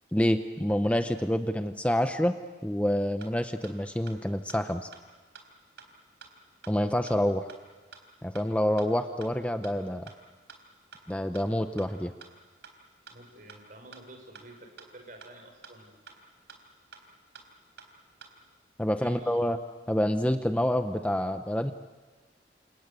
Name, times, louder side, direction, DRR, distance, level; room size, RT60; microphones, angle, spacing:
voice 1, 0.1-2.4 2.6-4.9 6.7-7.5 8.2-10.1 11.1-12.1 18.8-19.6 19.9-21.7, equal, 10° left, 8 dB, 0.8 m, -27 dB
sound 1, 3.2-3.3 3.6-3.7 4.1-4.2 4.5-4.6 4.9-5.0 5.3-5.4 5.8-5.9 6.2-6.3 6.6-6.7 7.1-7.2 7.5-7.6 7.9-8.0 8.3-8.4 8.8-8.9 9.2-9.3 9.6-9.7 10.1-10.2 10.5-10.6 10.9-11.0 11.3-11.4 11.8-11.9 12.2-12.3 12.6-12.7 13.1-13.2 13.5-13.6 13.9-14.0 14.3-14.4 14.8-14.9 15.2-15.3 15.6-15.7 16.1-16.2 16.5-16.6 16.9-17.0 17.3-17.4 17.8-17.9 18.2-18.3, right 6 dB, 80° right, 4.0 m, -48 dB
voice 2, 13.1-16.0 18.8-19.4, right 1 dB, 50° right, 4 dB, 5.4 m, -50 dB
29.0 x 27.5 x 6.9 m, 1.3 s
head